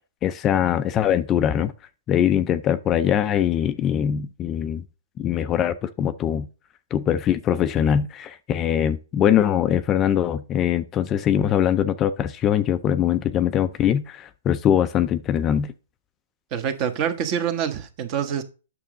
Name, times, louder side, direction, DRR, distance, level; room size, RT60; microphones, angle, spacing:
voice 1, 0.2-1.7 2.1-4.8 5.2-6.5 6.9-15.7, left 10 dB, 25° left, 0.5 m, -22 dB
voice 2, 16.5-18.4, right 8 dB, 35° right, 1.3 m, -26 dB
9.0 x 6.3 x 3.8 m
hypercardioid pair, 135°, 0 cm